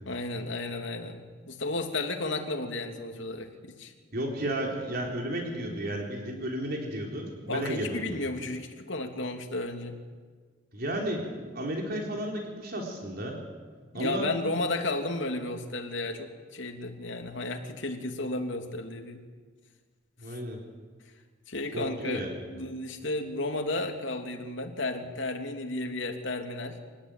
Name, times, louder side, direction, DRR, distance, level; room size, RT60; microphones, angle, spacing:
voice 1, 0.1-3.9 7.5-10.0 13.9-19.2 20.3-20.4 21.5-26.8, left 2 dB, 70° left, 3 dB, 2.9 m, -33 dB
voice 2, 4.1-8.2 10.7-13.4 13.9-14.3 20.2-20.6 21.7-22.4, right 1 dB, 50° right, 1 dB, 4.0 m, -33 dB
25.5 x 19.0 x 9.1 m, 1.5 s
head